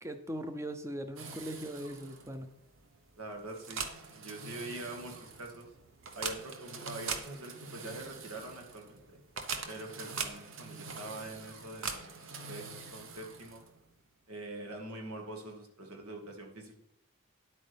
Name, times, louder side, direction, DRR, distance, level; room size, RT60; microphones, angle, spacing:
voice 1, 0.0-2.6, right 1 dB, 15° right, 9 dB, 0.5 m, -40 dB
sound 1, 1.2-13.9, right 5 dB, 60° right, 0.9 m, -43 dB
voice 2, 3.2-3.8 4.1-5.7 6.1-9.2 9.7-12.7 12.9-13.6 14.3-16.8, right 2 dB, 85° right, 2 dB, 1.8 m, -44 dB
10.0 x 8.4 x 3.4 m, 0.75 s
head